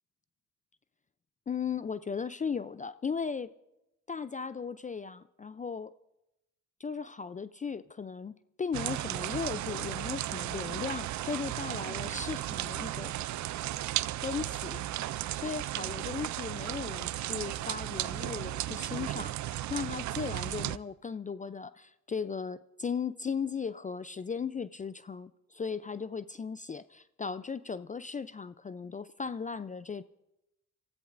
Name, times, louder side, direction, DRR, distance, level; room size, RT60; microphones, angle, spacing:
voice 1, 1.5-3.5 4.1-5.9 6.8-13.2 14.2-14.8 15.3-30.0, left 5 dB, 25° left, 0.4 m, -37 dB
sound 1, 8.7-20.8, right 14 dB, 60° right, 0.4 m, -35 dB
29.5 x 14.0 x 2.5 m
supercardioid pair, 60°, 32 cm